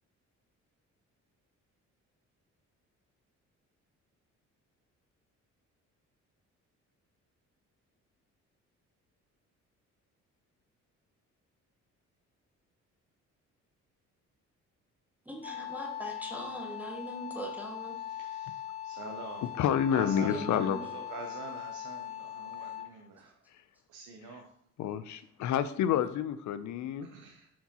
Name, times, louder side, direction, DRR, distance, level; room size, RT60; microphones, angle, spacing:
voice 1, 15.3-18.0 20.3-20.8, equal, 5° right, 0 dB, 0.9 m, -41 dB
Wind instrument woodwind instrument, 15.4-23.0, left 11 dB, 20° left, 0.5 m, -41 dB
voice 2, 17.9-19.5 19.9-23.4 23.9-24.5 27.0-27.5, right 4 dB, 85° right, 3 dB, 0.7 m, -45 dB
voice 3, 19.6-20.8 24.8-27.1, left 9 dB, 70° left, 13 dB, 0.5 m, -29 dB
7.3 x 4.7 x 2.8 m, 0.68 s
cardioid pair, 90°, 30 cm